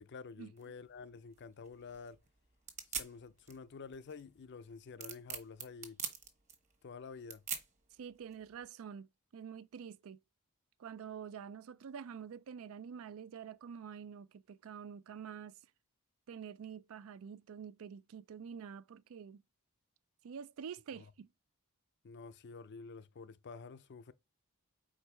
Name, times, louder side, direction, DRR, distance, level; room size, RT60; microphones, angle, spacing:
voice 1, 0.0-2.2 2.9-6.0 6.8-7.4 21.0-21.1 22.0-24.1, left 5 dB, 50° left, 0.5 m, -49 dB
sound 1, 0.6-8.7, right 7 dB, 35° right, 1.2 m, -46 dB
voice 2, 7.9-10.2 10.8-15.6 16.3-19.4 20.2-21.3, right 7 dB, 65° right, 0.4 m, -47 dB
4.7 x 4.5 x 5.5 m
head